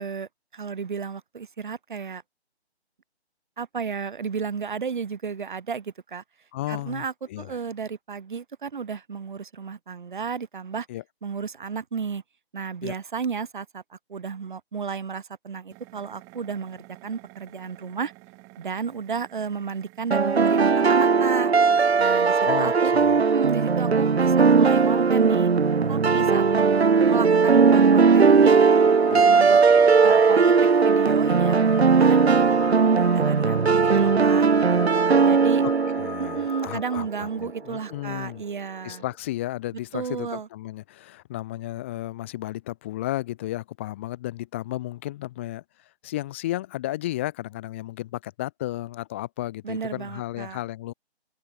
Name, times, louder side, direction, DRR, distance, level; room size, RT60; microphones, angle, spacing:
voice 1, 0.0-2.2 3.6-6.2 6.7-10.9 11.2-12.2 12.5-13.8 14.1-18.1 18.6-21.5 22.0-22.9 23.2-25.5 25.9-26.4 27.0-28.6 29.1-29.6 30.0-30.5 30.8-31.6 32.0-32.4 32.7-32.9 33.1-34.5 35.2-35.6 36.2-39.0 39.9-40.5 49.6-50.6, right 6 dB, 45° right, 1.4 m, -32 dB
voice 2, 6.5-7.6 10.9-11.0 12.8-12.9 22.4-23.2 29.1-29.2 35.6-35.7 36.0-38.4 38.8-45.6 46.0-50.9, left 15 dB, 10° left, 0.9 m, -33 dB
sound 1, 15.7-33.2, right 26 dB, 10° right, 1.1 m, -50 dB
sound 2, 20.1-37.0, right 5 dB, 70° right, 1.0 m, -18 dB
sound 3, 28.7-37.0, left 8 dB, 35° left, 3.0 m, -41 dB
figure-of-eight pair, 145°, 33 cm